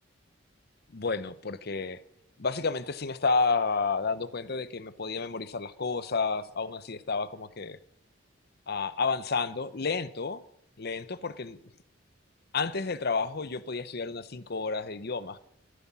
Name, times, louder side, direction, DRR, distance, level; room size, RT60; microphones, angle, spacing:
voice 1, 0.9-2.0 2.4-7.8 8.7-10.4 10.8-11.6 12.5-15.4, left 4 dB, 55° left, 14 dB, 0.8 m, -30 dB
15.0 x 9.8 x 6.1 m, 0.74 s
head